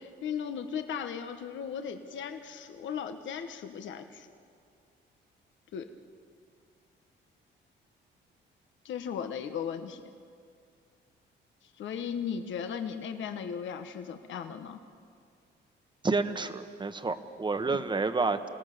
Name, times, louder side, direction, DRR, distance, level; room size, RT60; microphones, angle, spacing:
voice 1, 0.0-4.3 5.7-5.9 8.8-10.0 11.8-14.8, left 7 dB, 70° left, 7 dB, 1.3 m, -36 dB
voice 2, 16.0-18.5, right 3 dB, 25° right, 9 dB, 1.3 m, -29 dB
29.5 x 17.5 x 6.9 m, 2.2 s
cardioid pair, 90°, 20 cm